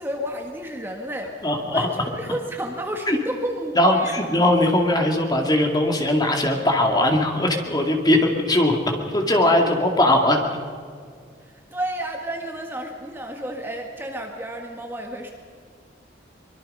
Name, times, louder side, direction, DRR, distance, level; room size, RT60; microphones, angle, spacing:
voice 1, 0.0-4.3 11.4-15.3, right 1 dB, 10° right, 2 dB, 1.6 m, -31 dB
voice 2, 1.4-1.9 3.1-3.2 3.8-10.4, left 1 dB, 20° left, 2 dB, 2.3 m, -20 dB
24.0 x 22.5 x 5.5 m, 2.1 s
head